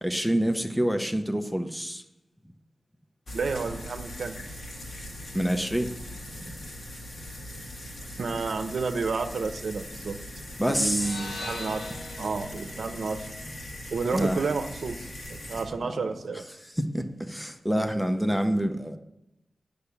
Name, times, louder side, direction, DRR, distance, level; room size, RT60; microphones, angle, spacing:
voice 1, 0.0-2.0 5.3-5.9 10.6-11.2 14.1-14.5 16.8-19.0, equal, ahead, 7 dB, 0.7 m, -27 dB
sound 1, 3.3-15.6, left 1 dB, 45° left, 1.9 m, -40 dB
voice 2, 3.3-4.4 8.2-10.2 10.7-11.9 12.2-13.2 13.9-16.4, right 4 dB, 60° right, 7 dB, 0.8 m, -31 dB
sound 2, 10.9-15.1, left 2 dB, 85° left, 1.5 m, -42 dB
9.8 x 6.8 x 8.4 m, 0.88 s
wide cardioid pair, 175°, 0 cm